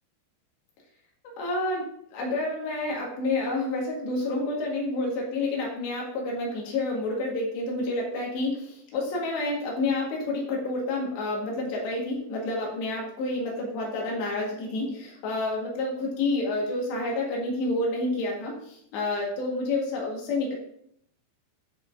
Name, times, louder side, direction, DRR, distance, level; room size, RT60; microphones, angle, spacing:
voice 1, 1.4-20.5, left 2 dB, 85° left, -2 dB, 3.9 m, -29 dB
10.5 x 4.8 x 2.6 m, 0.70 s
omnidirectional pair, 4.9 m